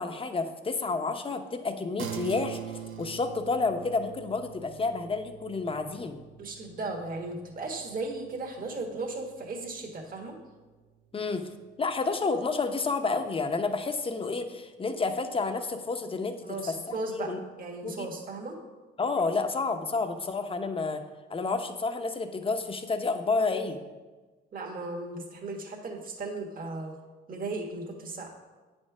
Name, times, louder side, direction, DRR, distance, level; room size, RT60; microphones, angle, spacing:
voice 1, 0.0-2.6 3.0-6.2 11.1-11.5 11.8-16.7 17.1-17.4 17.8-18.1 19.0-21.0 21.3-23.8, left 3 dB, 30° left, 7 dB, 0.8 m, -30 dB
sound 1, 2.0-11.7, right 9 dB, 85° right, 0.8 m, -44 dB
voice 2, 6.4-10.3 16.4-18.6 24.5-27.0 27.3-28.3, right 2 dB, 45° right, 0 dB, 1.5 m, -36 dB
8.8 x 4.4 x 6.0 m, 1.3 s
cardioid pair, 90°, 20 cm